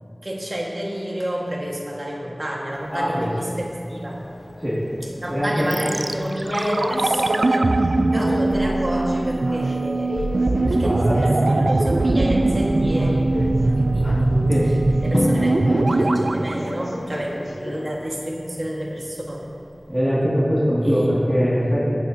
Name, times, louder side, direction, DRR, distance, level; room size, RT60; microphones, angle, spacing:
voice 1, 0.2-4.3 5.2-10.2 10.7-14.3 15.0-15.6 15.9-19.5 20.8-21.1, equal, 45° right, -2 dB, 1.8 m, -29 dB
sound 1, 2.8-18.1, left 2 dB, 75° left, 0.3 m, -36 dB
voice 2, 2.9-3.3 4.6-4.9 5.3-6.0 10.4-12.0 14.5-14.8 19.9-22.0, equal, 20° right, -9 dB, 2.5 m, -22 dB
sound 2, 5.7-17.7 18.0-18.1, right 2 dB, 90° right, 0.3 m, -21 dB
Drum, 15.1-16.8, equal, 40° left, 1.1 m, -25 dB
15.5 x 9.3 x 2.9 m, 2.5 s
wide cardioid pair, 50°, 0 cm